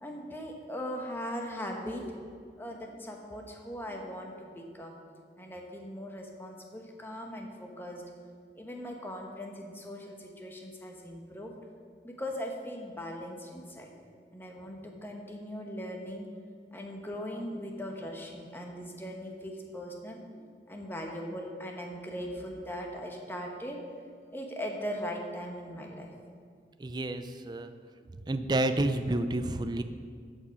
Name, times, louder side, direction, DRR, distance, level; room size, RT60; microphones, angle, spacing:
voice 1, 0.0-2.2 2.6-5.0 5.4-8.1 8.6-11.6 12.0-13.9 14.3-16.3 16.7-23.9 24.3-26.1, equal, 10° left, 1 dB, 1.0 m, -39 dB
voice 2, 26.8-27.7 28.3-29.8, right 2 dB, 25° right, 9 dB, 0.4 m, -29 dB
13.0 x 5.5 x 5.2 m, 2.1 s
head